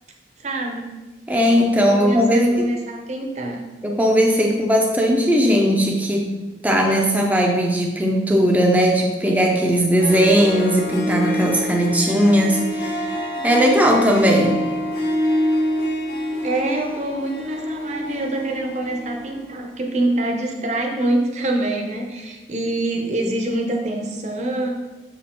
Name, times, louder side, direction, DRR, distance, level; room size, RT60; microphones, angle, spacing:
voice 1, 0.4-0.8 1.7-3.6 16.4-24.7, right 1 dB, 40° right, 2 dB, 0.8 m, -25 dB
voice 2, 1.3-2.7 3.8-6.3 6.6-13.1 13.4-14.6, equal, 10° right, 0 dB, 0.6 m, -18 dB
Harp, 9.7-9.8 10.0-19.5, left 1 dB, 55° left, 1.4 m, -26 dB
6.6 x 4.7 x 3.7 m, 1.2 s
head